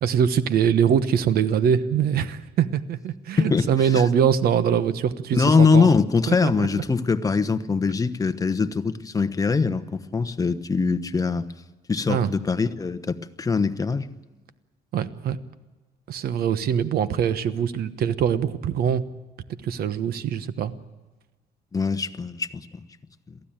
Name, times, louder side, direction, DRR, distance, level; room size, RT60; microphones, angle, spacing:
voice 1, 0.0-5.9 6.3-6.8 12.1-12.3 14.9-15.4 16.1-19.0 19.6-20.7, right 8 dB, 65° right, 13 dB, 1.2 m, -23 dB
voice 2, 5.3-11.5 11.9-14.1 21.7-22.8, left 4 dB, 20° left, 10 dB, 1.1 m, -22 dB
23.0 x 15.0 x 8.9 m, 1.2 s
cardioid pair, 110°, 17 cm